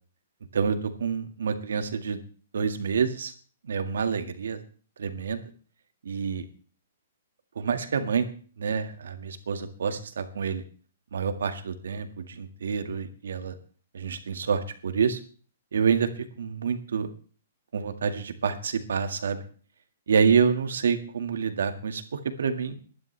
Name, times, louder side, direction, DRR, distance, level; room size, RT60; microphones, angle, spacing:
voice 1, 0.5-2.2 2.5-3.3 3.6-4.6 5.0-5.4 6.1-6.4 7.6-10.6 11.1-13.6 13.9-15.2 15.7-17.1 17.7-19.4 20.1-22.8, right 6 dB, 85° right, 8 dB, 1.9 m, -27 dB
21.0 x 11.0 x 3.4 m, 0.42 s
hypercardioid pair, 175°, 0 cm